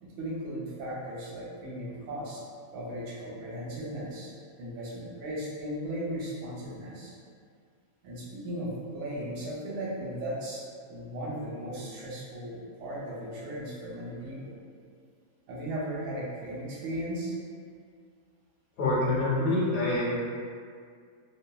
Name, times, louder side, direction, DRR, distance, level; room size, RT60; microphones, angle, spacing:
voice 1, 0.0-2.4 2.7-7.1 8.0-14.6 15.5-17.3, right 1 dB, 85° right, -6 dB, 1.3 m, -37 dB
voice 2, 18.8-20.3, left 2 dB, 65° left, -7 dB, 0.9 m, -26 dB
3.1 x 2.2 x 2.2 m, 2.1 s
omnidirectional pair, 1.7 m